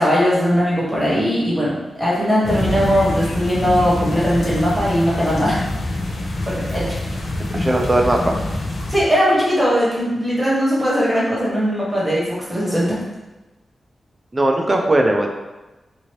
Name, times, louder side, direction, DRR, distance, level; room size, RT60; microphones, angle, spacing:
voice 1, 0.0-5.6 6.4-6.9 8.9-13.0, equal, 5° right, -7 dB, 1.2 m, -19 dB
sound 1, 2.4-9.0, left 1 dB, 75° left, 0.6 m, -25 dB
voice 2, 7.5-8.4 14.3-15.3, right 1 dB, 25° right, 2 dB, 0.4 m, -18 dB
2.8 x 2.6 x 3.1 m, 1.1 s
wide cardioid pair, 105°, 0 cm